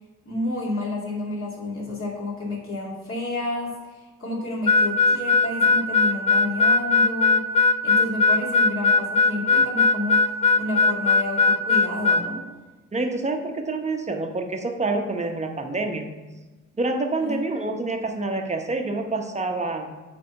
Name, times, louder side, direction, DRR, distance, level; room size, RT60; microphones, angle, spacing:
voice 1, 0.2-7.4 7.8-10.3 10.6-12.4 17.2-17.4, left 2 dB, 45° left, -3 dB, 2.5 m, -30 dB
Harmonica, 4.7-12.3, left 3 dB, 20° left, 0.4 m, -19 dB
voice 2, 12.9-16.1 16.8-20.0, right 2 dB, 25° right, 4 dB, 1.0 m, -27 dB
8.4 x 3.4 x 5.7 m, 1.2 s
cardioid pair, 90°, 30 cm